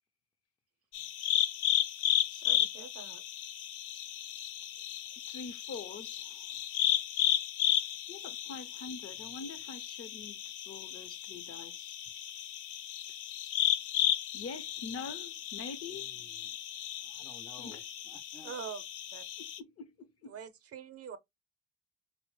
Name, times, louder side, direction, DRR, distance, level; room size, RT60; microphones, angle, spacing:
sound 1, 0.9-19.6, left 11 dB, 90° left, 0.5 m, -34 dB
voice 1, 2.3-3.2 18.4-18.8 19.1-19.2 20.3-21.2, right 7 dB, 50° right, 0.6 m, -44 dB
voice 2, 5.3-6.5 8.1-12.0 14.3-16.1 17.6-17.8 19.6-20.3, left 4 dB, 50° left, 0.7 m, -45 dB
voice 3, 15.9-16.5 17.0-18.5, left 2 dB, 10° left, 0.4 m, -55 dB
4.0 x 2.0 x 3.0 m
cardioid pair, 90°, 30 cm